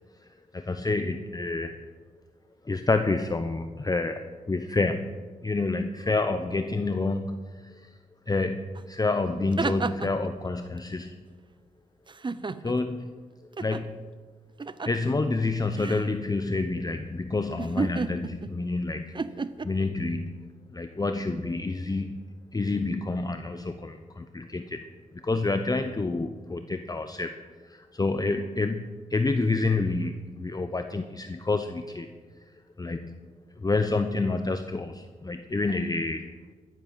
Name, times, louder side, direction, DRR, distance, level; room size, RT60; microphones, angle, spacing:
voice 1, 0.5-1.8 2.6-5.1 5.4-7.9 8.3-11.2 12.6-13.1 13.6-14.0 14.8-19.2 19.6-22.2 22.5-24.8 25.2-27.3 27.6-32.1 32.8-33.2 33.6-36.3, left 3 dB, 25° left, 8 dB, 0.8 m, -28 dB
sound 1, 8.8-8.9 9.3-10.3 12.1-12.9 13.6-13.8 14.6-15.1 15.7-16.1 17.6-18.6 19.2-19.7, right 4 dB, 35° right, 0.7 m, -32 dB
13.0 x 9.3 x 7.5 m, 1.4 s
cardioid pair, 60°, 14 cm